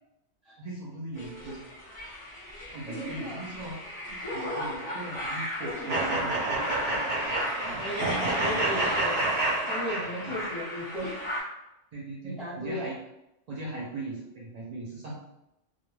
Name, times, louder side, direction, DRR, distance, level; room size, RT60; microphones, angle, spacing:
voice 1, 0.6-1.6 2.7-3.8 4.1-6.3 10.1-10.4 11.9-12.9 13.5-15.2, right 2 dB, 85° right, -5 dB, 0.3 m, -39 dB
sound 1, 1.2-11.4, left 1 dB, 30° left, 0.8 m, -36 dB
voice 2, 1.2-1.5 2.9-3.4 5.8-6.5 7.8-9.3 9.7-11.2 12.2-12.8, equal, ahead, -9 dB, 1.0 m, -36 dB
sound 2, 5.9-10.5, right 2 dB, 45° right, 0.8 m, -29 dB
2.4 x 2.1 x 3.0 m, 0.87 s
omnidirectional pair, 1.3 m